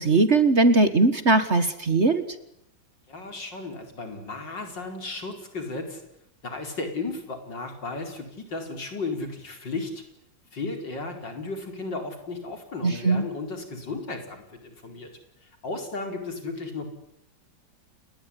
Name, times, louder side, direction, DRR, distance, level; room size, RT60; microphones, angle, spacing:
voice 1, 0.0-2.2 12.8-13.2, right 3 dB, 40° right, 11 dB, 1.8 m, -20 dB
voice 2, 3.1-6.1 6.4-10.0 10.5-15.1 15.4-16.9, left 3 dB, 70° left, 5 dB, 5.2 m, -34 dB
30.0 x 20.0 x 9.9 m, 0.80 s
omnidirectional pair, 2.0 m